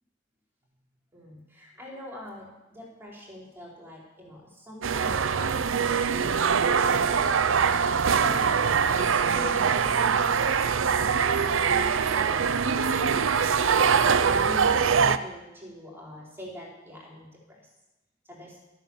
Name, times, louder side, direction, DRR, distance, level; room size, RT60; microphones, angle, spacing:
voice 1, 1.1-8.5 8.9-10.5 10.7-12.5 12.9-17.7 18.3-18.6, left 1 dB, 10° right, -3 dB, 4.5 m, -44 dB
sound 1, 4.8-15.2, right 6 dB, 75° right, 0.6 m, -23 dB
13.5 x 9.5 x 7.3 m, 1.0 s
head